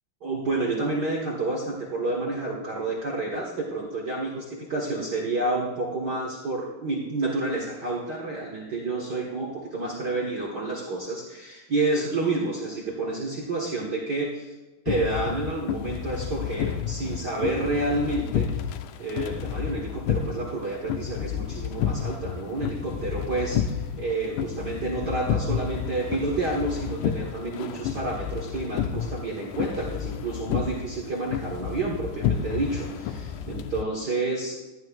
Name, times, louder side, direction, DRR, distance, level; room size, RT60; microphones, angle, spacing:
voice 1, 0.2-14.5 14.8-18.5 19.0-34.6, right 2 dB, 70° right, -3 dB, 0.9 m, -29 dB
sound 1, 14.9-33.8, left 9 dB, 80° left, 1.9 m, -31 dB
16.0 x 11.5 x 2.4 m, 1.1 s
omnidirectional pair, 4.0 m